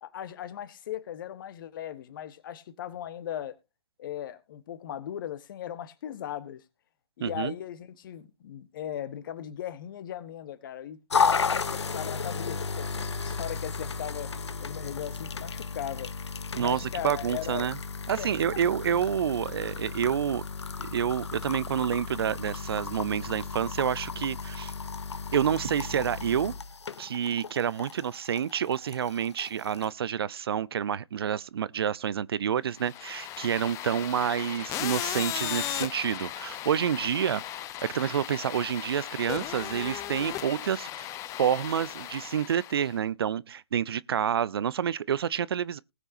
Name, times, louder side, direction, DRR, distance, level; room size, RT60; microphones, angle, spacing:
voice 1, 0.0-3.6 4.0-6.6 7.2-12.9 13.2-14.3 14.6-16.1 16.6-17.7 18.2-18.6, left 10 dB, 50° left, 1.3 m, -38 dB
voice 2, 7.2-7.5 16.6-17.8 18.1-20.4 20.8-24.7 25.3-26.5 27.0-37.6 37.9-41.1 41.4-45.8, right 8 dB, 60° right, 0.5 m, -28 dB
sound 1, 11.1-29.9, left 5 dB, 80° left, 0.8 m, -34 dB
sound 2, 32.8-43.0, left 13 dB, 20° left, 0.7 m, -36 dB
19.5 x 6.7 x 2.7 m
figure-of-eight pair, 125°, 14 cm